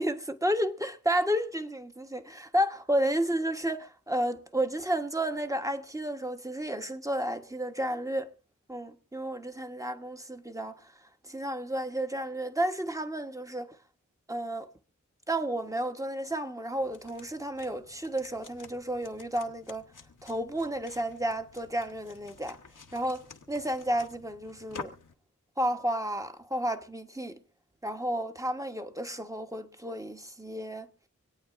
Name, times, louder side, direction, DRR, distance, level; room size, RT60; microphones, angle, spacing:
voice 1, 0.0-8.3 8.7-10.9 11.2-13.8 14.3-14.7 15.3-19.8 20.2-22.6 22.9-24.9 25.6-27.4 27.8-30.9, right 1 dB, 10° right, 1.2 m, -32 dB
sound 1, 16.8-25.1, left 4 dB, 85° left, 1.1 m, -50 dB
26.5 x 8.8 x 2.6 m
cardioid pair, 40°, 31 cm